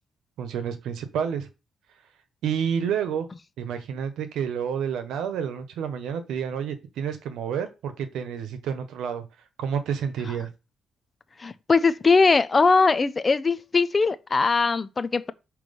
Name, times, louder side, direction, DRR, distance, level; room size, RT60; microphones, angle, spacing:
voice 1, 0.4-1.5 2.4-3.2 3.6-9.2 9.6-10.5, right 7 dB, 85° right, 1.1 m, -29 dB
voice 2, 11.4-15.3, left 4 dB, 20° left, 0.3 m, -21 dB
6.0 x 3.1 x 5.3 m
cardioid pair, 180°, 0 cm